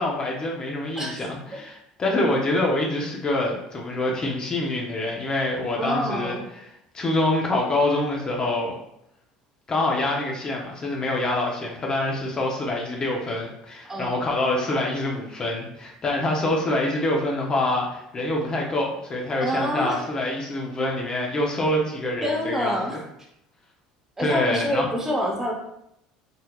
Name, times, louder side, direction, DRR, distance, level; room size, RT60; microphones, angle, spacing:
voice 1, 0.0-6.7 6.9-8.8 9.7-22.7 24.2-24.8, left 1 dB, 30° left, -1 dB, 0.7 m, -25 dB
voice 2, 5.8-6.4 13.9-14.2 19.4-20.0 22.2-23.0 24.2-25.5, equal, 15° right, -1 dB, 1.0 m, -27 dB
3.9 x 2.7 x 2.4 m, 0.78 s
supercardioid pair, 80°, 3 cm